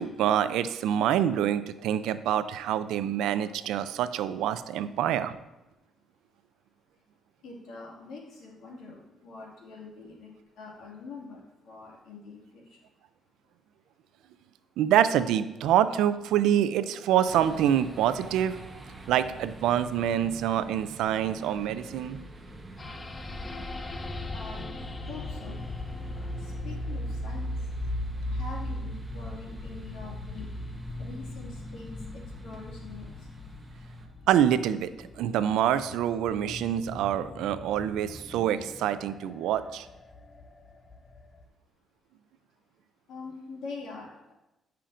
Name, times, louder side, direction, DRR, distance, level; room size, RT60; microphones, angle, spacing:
voice 1, 0.0-5.4 14.8-18.6 19.1-22.2 34.3-39.9, right 10 dB, 90° right, 13 dB, 0.3 m, -26 dB
voice 2, 7.4-12.6 24.3-25.7 26.1-27.5 28.3-30.5 31.0-33.2 43.1-44.3, left 3 dB, 80° left, -2 dB, 1.9 m, -44 dB
sound 1, 17.3-34.1, right 2 dB, 25° right, 0.9 m, -47 dB
sound 2, 22.8-41.5, left 1 dB, 25° left, 0.6 m, -38 dB
10.0 x 5.6 x 2.5 m, 0.98 s
cardioid pair, 90°, 0 cm